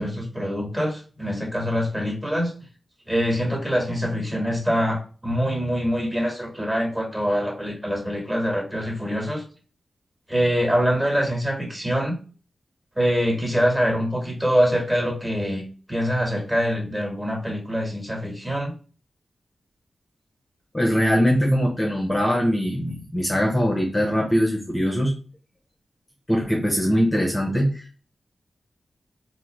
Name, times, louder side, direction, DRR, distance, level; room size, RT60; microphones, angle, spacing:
voice 1, 0.0-2.5 3.1-9.4 10.3-12.2 12.9-18.7, equal, 15° right, 0 dB, 1.3 m, -24 dB
voice 2, 20.7-25.1 26.3-28.0, equal, 15° left, -1 dB, 0.7 m, -22 dB
3.6 x 2.1 x 3.1 m, 0.38 s
cardioid pair, 60°, 0 cm